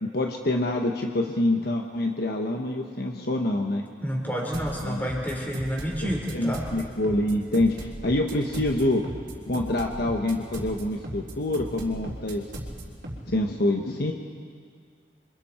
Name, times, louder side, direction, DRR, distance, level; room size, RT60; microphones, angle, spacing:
voice 1, 0.0-3.8 4.9-5.0 6.0-9.0 9.5-12.5 13.3-14.1, left 1 dB, 60° left, 2 dB, 1.3 m, -26 dB
voice 2, 4.0-6.7, equal, 10° left, -2 dB, 4.5 m, -29 dB
sound 1, 4.5-13.2, right 1 dB, 65° right, 3.9 m, -37 dB
29.0 x 25.0 x 4.5 m, 2.1 s
head